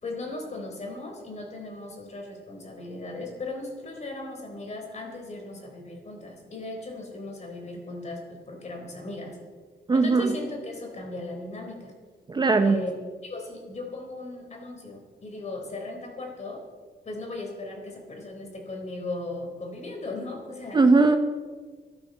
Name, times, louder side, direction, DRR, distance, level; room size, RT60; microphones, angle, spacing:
voice 1, 0.0-9.4 9.9-11.9 12.6-12.9 13.2-16.6 17.0-20.9, left 2 dB, 40° left, 2 dB, 3.8 m, -37 dB
voice 2, 9.9-10.3 12.3-12.8 20.7-21.2, right 3 dB, 25° right, 7 dB, 0.7 m, -19 dB
12.5 x 12.5 x 6.7 m, 1.4 s
wide cardioid pair, 155°, 18 cm